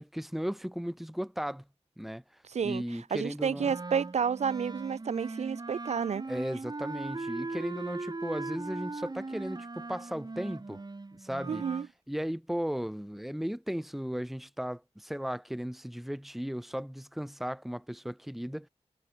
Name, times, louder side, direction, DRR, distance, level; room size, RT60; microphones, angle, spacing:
voice 1, 0.0-1.6 2.0-2.2 2.6-3.7 6.3-10.8 11.1-11.7 12.1-18.7, equal, ahead, 0.8 m, -36 dB
voice 2, 2.5-2.8 3.1-6.3 11.5-11.9, right 7 dB, 70° right, 0.4 m, -30 dB
Wind instrument woodwind instrument, 3.5-11.9, right 3 dB, 35° right, 1.7 m, -39 dB
wide cardioid pair, 85°, 12 cm